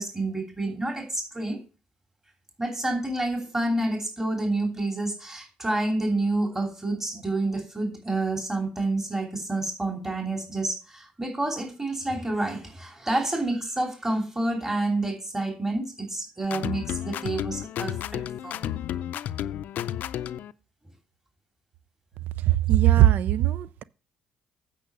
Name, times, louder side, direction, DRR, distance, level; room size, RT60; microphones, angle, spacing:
voice 1, 0.0-1.6 2.6-18.8, right 2 dB, 15° right, 3.0 m, -29 dB
sound 1, 16.4-20.5, left 11 dB, 70° left, 0.4 m, -32 dB
voice 2, 22.5-23.8, right 13 dB, 70° right, 0.4 m, -19 dB
8.5 x 5.6 x 6.6 m
supercardioid pair, 65°, 3 cm